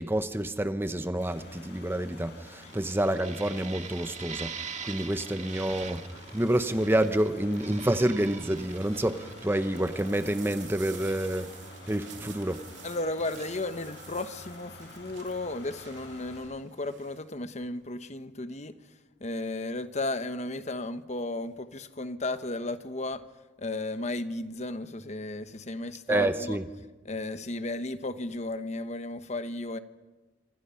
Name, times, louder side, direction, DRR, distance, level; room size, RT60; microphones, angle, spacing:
voice 1, 0.0-11.5 11.9-12.6 26.1-26.6, right 1 dB, 15° right, 0.9 m, -28 dB
sound 1, 1.2-16.4, left 2 dB, 65° left, 7.7 m, -49 dB
sound 2, 2.6-12.6 12.9-13.5, right 6 dB, 40° right, 1.7 m, -43 dB
sound 3, 4.0-4.2 5.5-7.4 7.9-17.2 17.6-18.0, right 10 dB, 85° right, 2.7 m, -52 dB
voice 2, 12.8-18.8 19.2-23.3 23.6-26.6 27.0-29.8, left 2 dB, 40° left, 1.1 m, -34 dB
26.0 x 26.0 x 5.8 m
head